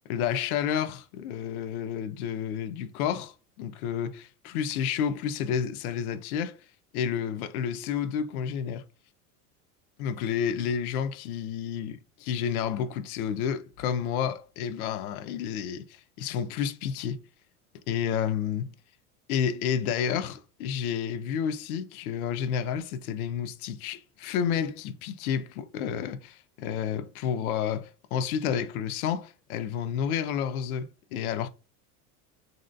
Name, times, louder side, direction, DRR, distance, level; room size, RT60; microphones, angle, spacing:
voice 1, 0.0-6.6 6.9-8.8 10.0-17.2 17.9-18.7 19.3-31.5, left 8 dB, 75° left, 0.5 m, -30 dB
3.0 x 2.7 x 2.5 m
hypercardioid pair, 90°, 44 cm